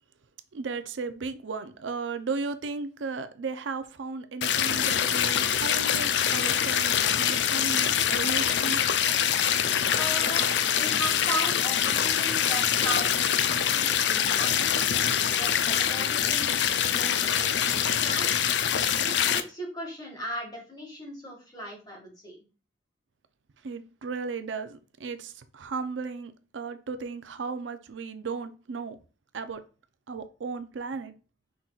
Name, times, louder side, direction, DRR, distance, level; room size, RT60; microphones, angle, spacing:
voice 1, 0.5-8.8 23.6-29.0 29.3-29.6 30.1-31.1, right 4 dB, 85° right, 0.5 m, -35 dB
sound 1, 4.4-19.4, left 9 dB, 70° left, 0.4 m, -25 dB
voice 2, 9.9-14.9 15.3-18.3 19.0-22.4, right 1 dB, 20° left, 1.8 m, -37 dB
5.8 x 3.8 x 2.4 m
head